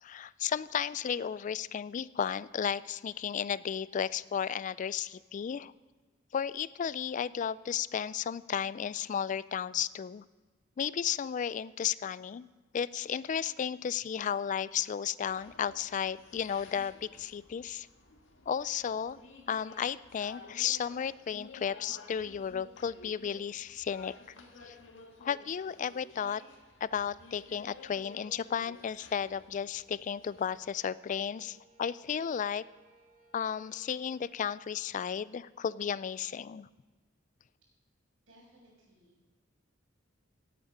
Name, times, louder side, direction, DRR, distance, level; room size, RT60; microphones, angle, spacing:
voice 1, 0.0-5.7 6.3-10.2 10.8-12.5 12.7-17.9 18.5-19.2 19.5-24.1 24.6-24.8 25.2-26.4 26.8-32.6 33.3-36.7, left 8 dB, 40° left, 18 dB, 0.3 m, -34 dB
sound 1, 15.2-30.6, left 3 dB, 70° left, 1.8 m, -54 dB
sound 2, 26.1-34.2, right 2 dB, 45° right, 2.2 m, -66 dB
voice 2, 38.3-39.3, equal, 75° right, -7 dB, 5.3 m, -61 dB
17.5 x 8.6 x 5.3 m, 1.3 s
head